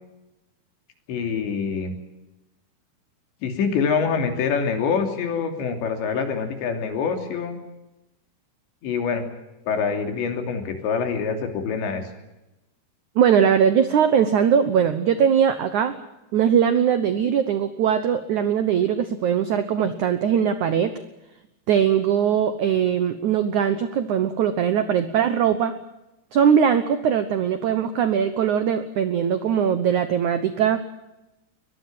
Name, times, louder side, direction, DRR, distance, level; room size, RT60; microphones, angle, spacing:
voice 1, 1.1-2.0 3.4-7.6 8.8-9.3 9.7-12.1, left 6 dB, 80° left, 6 dB, 5.2 m, -25 dB
voice 2, 13.2-16.0 16.3-20.9 21.7-25.7 26.3-30.8, right 8 dB, 80° right, 11 dB, 1.7 m, -20 dB
22.0 x 22.0 x 7.7 m, 0.95 s
omnidirectional pair, 5.1 m